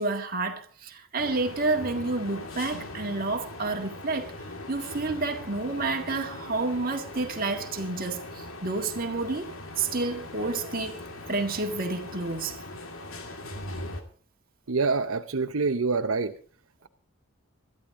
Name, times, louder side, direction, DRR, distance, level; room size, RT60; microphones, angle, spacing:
voice 1, 0.0-4.3 4.7-12.6, right 3 dB, 40° right, 1.9 m, -30 dB
sound 1, 1.2-14.0, left 2 dB, 75° left, 2.2 m, -40 dB
voice 2, 14.7-16.3, right 4 dB, 75° right, 0.8 m, -26 dB
20.5 x 13.5 x 3.7 m
head